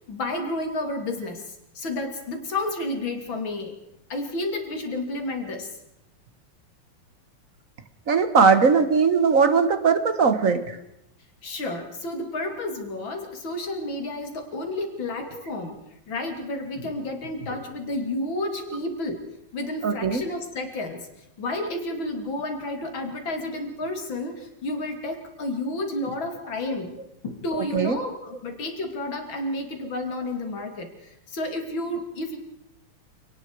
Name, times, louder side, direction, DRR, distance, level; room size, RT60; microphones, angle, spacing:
voice 1, 0.1-3.8 4.1-5.7 11.4-15.8 16.1-21.1 21.4-27.0 27.2-32.4, left 2 dB, 65° left, 4 dB, 3.5 m, -31 dB
voice 2, 8.1-10.8 19.8-20.2 27.5-28.0, right 5 dB, 40° right, 10 dB, 1.7 m, -20 dB
28.5 x 19.0 x 4.8 m, 0.82 s
omnidirectional pair, 2.4 m